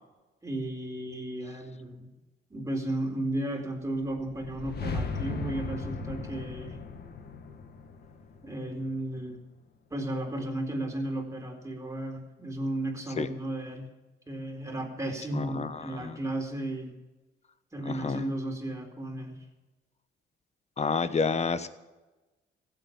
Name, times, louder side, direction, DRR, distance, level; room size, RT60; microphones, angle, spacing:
voice 1, 0.4-2.1 2.5-6.8 8.4-9.4 9.9-13.9 14.3-16.9 17.7-19.4, right 1 dB, 15° right, 1 dB, 4.1 m, -34 dB
sound 1, 4.1-9.2, left 4 dB, 55° left, 1.8 m, -37 dB
voice 2, 15.3-16.2 17.8-18.2 20.8-21.7, left 5 dB, 35° left, 12 dB, 1.2 m, -29 dB
16.0 x 8.2 x 9.3 m, 1.1 s
cardioid pair, 90°, 20 cm